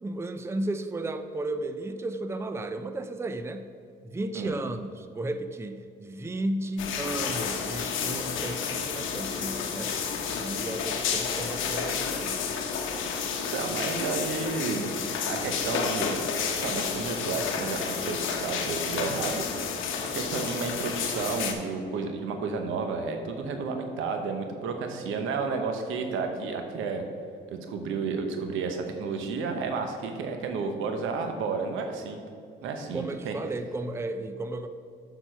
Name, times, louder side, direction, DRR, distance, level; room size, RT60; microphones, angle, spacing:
voice 1, 0.0-3.7 4.0-9.9 10.3-12.6 32.9-34.7, right 2 dB, 15° right, 9 dB, 0.4 m, -34 dB
sound 1, 6.8-21.5, left 6 dB, 80° left, 0.9 m, -31 dB
voice 2, 13.5-14.9 15.3-19.4 20.1-27.0 27.5-32.2 32.6-33.4, right 4 dB, 90° right, 5 dB, 0.9 m, -32 dB
7.0 x 6.0 x 4.5 m, 2.5 s
cardioid pair, 90°, 20 cm